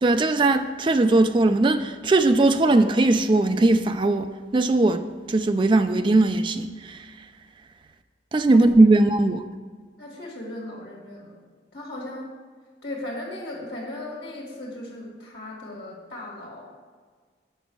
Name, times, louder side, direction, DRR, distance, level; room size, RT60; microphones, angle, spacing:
voice 1, 0.0-7.0 8.3-9.4, right 2 dB, 25° right, 0.3 m, -19 dB
voice 2, 10.0-11.3 11.7-12.3 12.8-16.7, left 1 dB, 65° left, 1.8 m, -37 dB
6.1 x 5.1 x 6.9 m
head